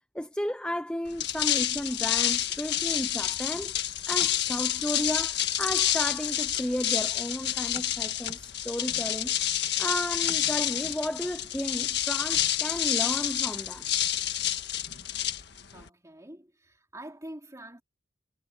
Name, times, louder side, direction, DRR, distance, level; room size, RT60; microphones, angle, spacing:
voice 1, 0.0-3.7 4.1-9.4 9.8-13.8, left 1 dB, 5° left, 0.7 m, -33 dB
sound 1, 1.1-15.9, left 11 dB, 60° left, 1.6 m, -29 dB
voice 2, 15.7-17.8, right 1 dB, 15° right, 3.3 m, -45 dB
head